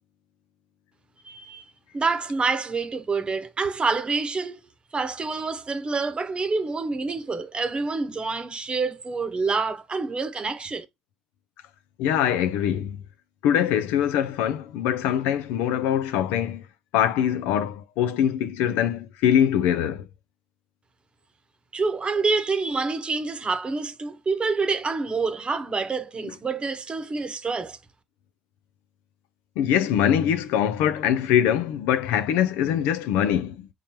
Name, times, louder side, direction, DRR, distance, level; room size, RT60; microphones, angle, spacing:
voice 1, 1.2-1.6 1.9-4.6 4.9-10.8 21.7-27.8, right 4 dB, 35° right, 0.9 m, -27 dB
voice 2, 12.0-13.0 13.4-16.6 16.9-20.1 26.2-26.3 29.6-33.7, left 10 dB, 80° left, 0.4 m, -23 dB
4.5 x 3.7 x 2.9 m
hypercardioid pair, 60°, 3 cm